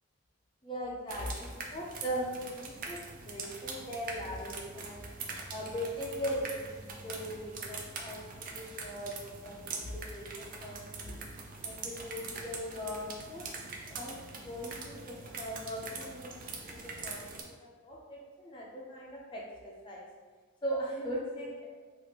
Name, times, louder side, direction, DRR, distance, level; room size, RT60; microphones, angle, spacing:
voice 1, 0.6-3.0 3.3-5.1 5.5-9.1 9.4-11.2 11.6-13.6 13.9-20.0 20.6-21.6, equal, 20° left, -4 dB, 0.4 m, -39 dB
sound 1, 1.1-17.4, right 4 dB, 40° right, 0.4 m, -43 dB
3.3 x 2.4 x 2.8 m, 1.4 s
head